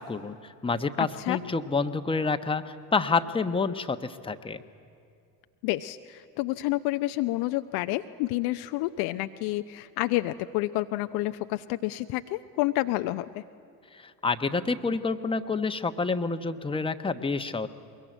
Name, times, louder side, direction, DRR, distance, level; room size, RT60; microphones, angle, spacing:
voice 1, 0.0-4.6 13.9-17.7, left 4 dB, 10° left, 8 dB, 1.1 m, -28 dB
voice 2, 1.0-1.4 5.6-13.4, left 17 dB, 50° left, 10 dB, 0.7 m, -29 dB
22.5 x 22.0 x 9.2 m, 2.4 s
figure-of-eight pair, 60°, 49 cm